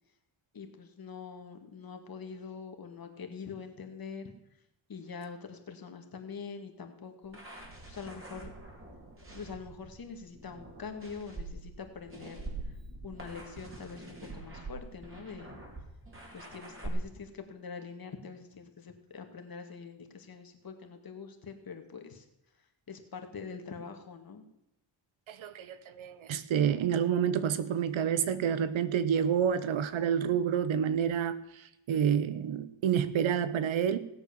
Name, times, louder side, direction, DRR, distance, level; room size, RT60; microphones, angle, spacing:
voice 1, 0.5-4.3 4.9-8.5 9.3-12.7 13.0-15.6 16.3-22.2 22.9-24.4, left 5 dB, 50° left, 5 dB, 2.2 m, -44 dB
sound 1, 7.2-16.9, right 2 dB, 25° right, 4.2 m, -45 dB
voice 2, 25.3-34.0, right 8 dB, 80° right, 14 dB, 1.1 m, -29 dB
17.5 x 8.1 x 7.0 m, 0.88 s
cardioid pair, 90°, 46 cm